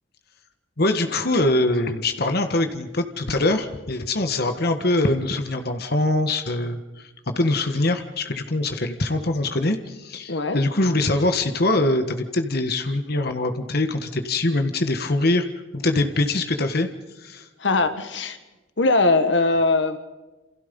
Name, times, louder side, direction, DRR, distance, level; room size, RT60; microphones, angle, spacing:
voice 1, 0.8-15.5 15.7-16.9 17.1-17.5, left 2 dB, 55° left, 7 dB, 1.6 m, -23 dB
voice 2, 10.3-10.6 17.6-18.4 18.8-20.0, left 3 dB, 75° left, 9 dB, 1.7 m, -20 dB
29.0 x 27.0 x 5.4 m, 1.1 s
head